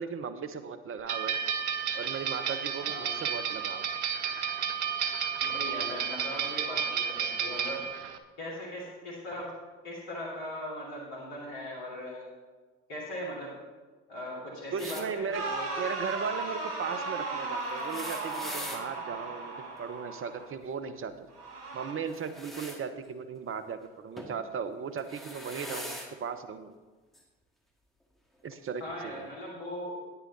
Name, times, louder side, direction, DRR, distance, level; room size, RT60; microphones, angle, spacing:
voice 1, 0.0-1.3 1.9-3.8 14.7-15.4 15.8-21.3 21.7-26.7 28.4-29.2, right 6 dB, 40° right, 10 dB, 0.9 m, -37 dB
sound 1, 1.1-8.2, right 7 dB, 90° right, 0.6 m, -32 dB
voice 2, 2.9-3.2 5.4-7.8 8.4-9.5 9.8-12.3 12.9-13.6 14.1-15.8 28.8-30.0, left 1 dB, 75° left, -4 dB, 2.6 m, -39 dB
sound 2, 14.8-15.1 17.7-18.8 22.0-22.8 24.2-24.4 25.0-26.1 27.1-27.2 28.4-28.5, equal, ahead, 2.0 m, -41 dB
sound 3, 15.3-20.5 21.3-21.9, right 3 dB, 60° right, 2.3 m, -36 dB
9.9 x 9.6 x 4.0 m, 1.3 s
hypercardioid pair, 55°, 33 cm